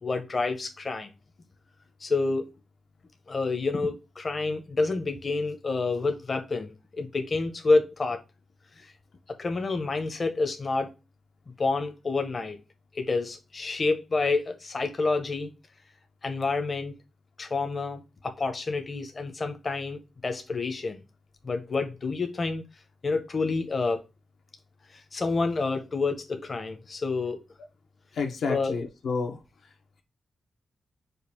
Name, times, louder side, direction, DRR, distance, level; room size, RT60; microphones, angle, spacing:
voice 1, 0.0-1.1 2.0-2.5 3.3-8.2 8.8-8.9 9.3-10.9 11.6-12.6 12.9-15.5 16.2-16.9 17.4-21.0 21.4-22.6 23.0-24.0 25.1-27.4 28.5-28.8, left 3 dB, 35° left, 0.7 m, -28 dB
voice 2, 28.1-29.4, left 4 dB, 80° left, 0.9 m, -30 dB
5.2 x 2.4 x 4.3 m
wide cardioid pair, 130°, 0 cm